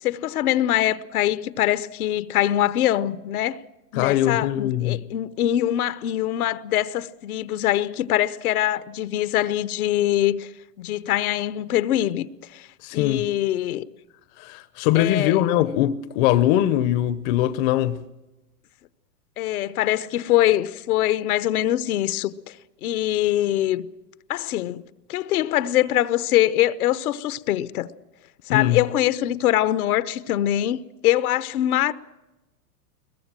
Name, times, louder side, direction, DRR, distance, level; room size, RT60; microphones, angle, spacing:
voice 1, 0.0-3.6 3.9-10.5 10.8-12.7 12.9-13.9 14.9-15.4 19.4-23.9 24.3-24.8 25.1-27.9 28.5-31.9, left 13 dB, 65° left, 1.1 m, -23 dB
voice 2, 4.0-5.0 12.8-13.2 14.4-18.0 28.5-28.8, left 13 dB, 40° left, 0.8 m, -21 dB
22.0 x 20.5 x 7.5 m
hypercardioid pair, 145°, 47 cm